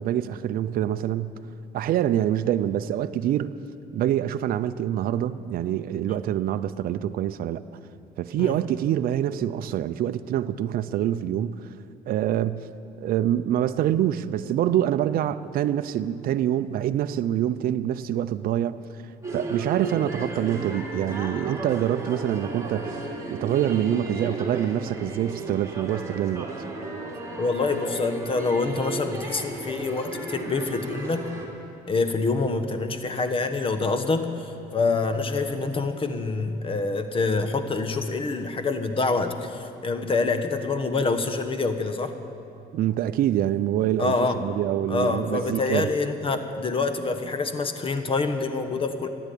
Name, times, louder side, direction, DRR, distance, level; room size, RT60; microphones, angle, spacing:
voice 1, 0.0-1.4 1.7-3.6 3.9-7.6 8.2-11.7 12.1-12.7 13.0-19.0 19.3-23.0 23.3-26.5 42.7-45.9, right 11 dB, 60° right, 0.5 m, -25 dB
sound 1, 19.2-31.5, right 2 dB, 20° right, 2.8 m, -34 dB
voice 2, 27.4-31.3 31.9-42.1 44.0-44.4 44.9-49.1, left 3 dB, 30° left, 1.2 m, -26 dB
14.0 x 11.0 x 8.5 m
cardioid pair, 110°, 17 cm